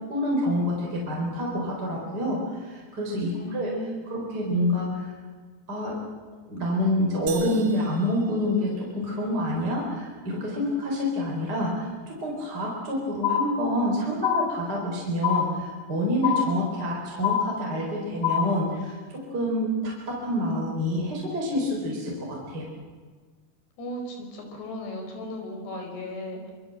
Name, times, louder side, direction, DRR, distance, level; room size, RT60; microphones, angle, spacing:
voice 1, 0.1-3.7 4.1-5.1 5.7-6.0 6.5-22.7, left 1 dB, 25° right, -2 dB, 4.6 m, -27 dB
voice 2, 3.3-4.2 23.8-26.5, left 1 dB, 75° left, 3 dB, 6.6 m, -36 dB
sound 1, 7.3-9.2, right 7 dB, 75° right, 4.4 m, -43 dB
sound 2, 13.2-13.9 14.2-14.9 15.2-15.9 16.2-16.9 17.2-17.9 18.2-18.9, left 9 dB, 45° left, 2.3 m, -27 dB
26.0 x 24.0 x 7.9 m, 1.5 s
omnidirectional pair, 4.8 m